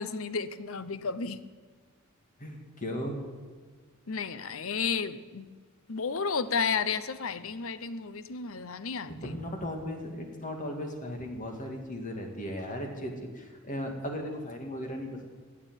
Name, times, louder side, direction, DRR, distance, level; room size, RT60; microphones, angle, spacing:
voice 1, 0.0-1.4 4.1-5.5 5.9-9.4, left 5 dB, 70° left, 13 dB, 0.8 m, -32 dB
voice 2, 2.4-3.2 9.1-15.3, equal, 40° left, 3 dB, 2.3 m, -36 dB
14.5 x 8.9 x 9.0 m, 1.5 s
head